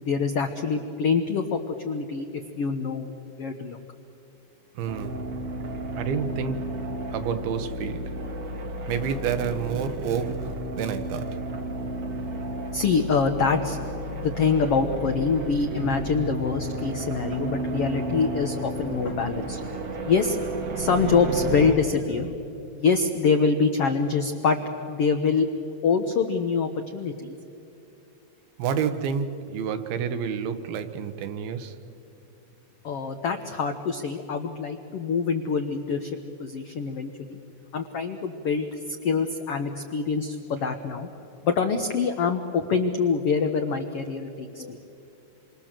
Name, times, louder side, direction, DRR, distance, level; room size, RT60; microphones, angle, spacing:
voice 1, 0.0-3.1 3.4-3.8 12.7-13.8 14.1-19.6 20.0-20.4 20.8-22.3 22.7-24.6 24.9-25.5 25.8-27.4 32.8-37.4 37.7-41.1 41.4-44.8, left 5 dB, 75° left, 1.3 m, -25 dB
voice 2, 4.7-5.3 5.9-6.9 7.1-8.2 8.9-11.4 28.6-31.8, right 7 dB, 85° right, 3.1 m, -29 dB
sound 1, 4.8-21.8, right 2 dB, 45° right, 2.7 m, -32 dB
28.0 x 24.5 x 7.5 m
omnidirectional pair, 4.3 m